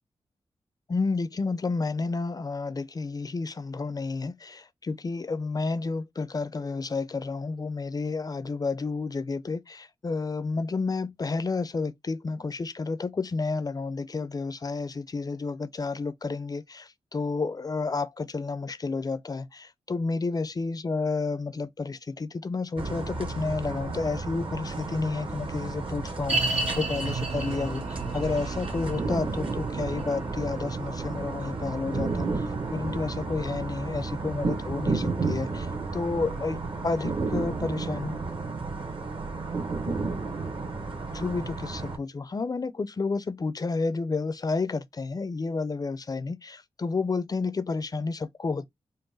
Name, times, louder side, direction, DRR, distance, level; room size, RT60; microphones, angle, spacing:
voice 1, 0.9-38.3 41.1-48.7, left 4 dB, 35° left, 0.5 m, -31 dB
sound 1, 22.8-42.0, right 3 dB, 50° right, 1.2 m, -32 dB
sound 2, 26.3-37.6 37.8-37.9 38.6-38.7, right 3 dB, 85° right, 1.5 m, -36 dB
3.9 x 2.2 x 3.8 m
cardioid pair, 55°, 11 cm